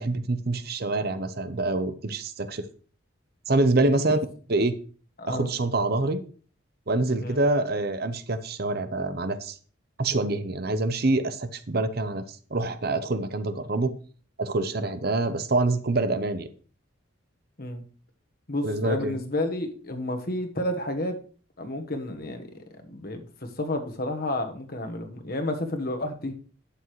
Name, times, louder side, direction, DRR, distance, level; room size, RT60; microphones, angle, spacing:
voice 1, 0.0-2.7 3.5-4.2 4.5-4.7 5.3-6.2 6.9-9.6 10.0-12.2 12.5-13.9 14.4-16.5 18.6-19.2, right 2 dB, 50° right, 11 dB, 0.7 m, -26 dB
voice 2, 18.5-21.2 21.6-22.5 22.9-26.3, left 1 dB, 45° left, 5 dB, 1.3 m, -31 dB
11.5 x 8.3 x 3.1 m, 0.41 s
head